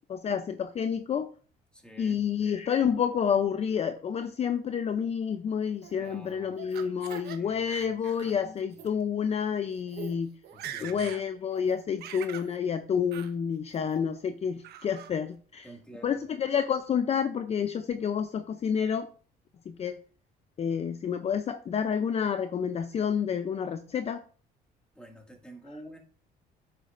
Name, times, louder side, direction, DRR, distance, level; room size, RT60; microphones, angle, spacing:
voice 1, 0.1-1.3 2.0-10.3 10.8-15.7 16.0-19.1 19.7-20.0 20.6-24.2, left 7 dB, 40° left, 9 dB, 0.6 m, -29 dB
voice 2, 1.7-2.2 6.0-6.6 7.3-8.4 8.7-9.0 10.5-11.1 15.6-16.2 24.9-26.0, right 1 dB, 5° left, 2 dB, 2.1 m, -49 dB
Laughter, 5.8-7.4 7.7-8.3 8.7-8.9 9.6-9.7 9.9-10.1 10.4-11.2 11.6-12.5 13.1-13.3 13.7-14.2 14.6-15.1, right 9 dB, 70° right, 1.2 m, -43 dB
9.5 x 7.9 x 2.6 m, 0.42 s
cardioid pair, 110°, 17 cm